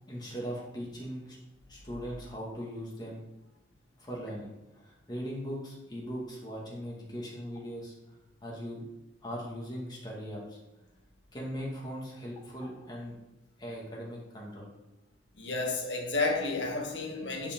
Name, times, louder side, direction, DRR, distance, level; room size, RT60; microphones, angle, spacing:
voice 1, 0.1-1.4 1.7-3.2 4.0-7.9 8.4-8.8 9.2-10.6 11.3-13.2 13.6-14.7, equal, 25° left, -3 dB, 2.1 m, -39 dB
voice 2, 15.4-17.5, left 3 dB, 75° left, 2 dB, 1.5 m, -31 dB
9.8 x 5.3 x 3.8 m, 0.99 s
head